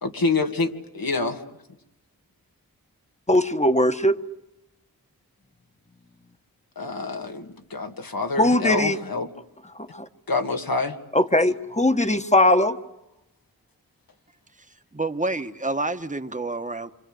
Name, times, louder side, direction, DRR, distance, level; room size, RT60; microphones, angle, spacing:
voice 1, 0.0-1.4 6.8-9.3 10.3-11.0, left 3 dB, 75° left, 2.4 m, -27 dB
voice 2, 3.3-4.2 8.4-9.0 9.8-10.1 11.1-12.8, left 1 dB, 20° left, 1.5 m, -20 dB
voice 3, 14.9-16.9, right 2 dB, 20° right, 1.5 m, -28 dB
27.5 x 26.0 x 8.0 m
wide cardioid pair, 60°, 35 cm